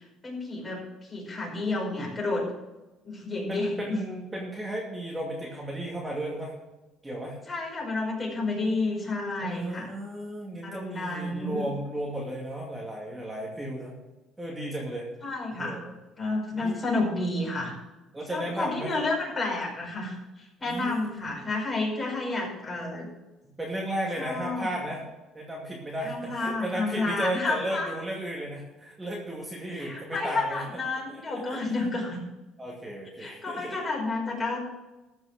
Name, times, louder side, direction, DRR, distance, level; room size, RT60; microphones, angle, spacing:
voice 1, 0.0-2.5 3.0-4.0 7.5-9.9 10.6-11.7 15.2-15.9 16.2-17.7 18.3-23.1 24.2-24.7 26.0-27.9 29.7-32.2 33.2-34.6, left 2 dB, 25° left, -2 dB, 5.0 m, -30 dB
voice 2, 3.5-6.5 7.0-7.4 9.4-14.0 14.4-15.1 15.5-15.9 16.5-16.8 18.1-19.0 20.7-21.5 23.4-25.0 25.3-30.6 31.1-31.6 32.6-33.8, right 1 dB, 15° right, -3 dB, 2.4 m, -34 dB
14.0 x 6.2 x 6.5 m, 1.1 s
cardioid pair, 115°, 0 cm